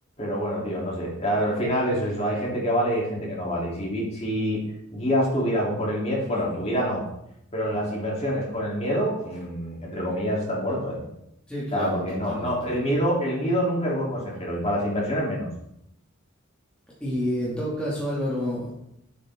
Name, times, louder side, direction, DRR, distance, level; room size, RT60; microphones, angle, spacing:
voice 1, 0.2-4.6 4.9-7.0 7.5-11.0 11.7-15.5, equal, 30° left, -4 dB, 3.4 m, -26 dB
voice 2, 7.7-8.0 11.5-12.7 17.0-18.7, equal, 5° left, -8 dB, 2.4 m, -29 dB
9.6 x 8.4 x 3.8 m, 0.79 s
head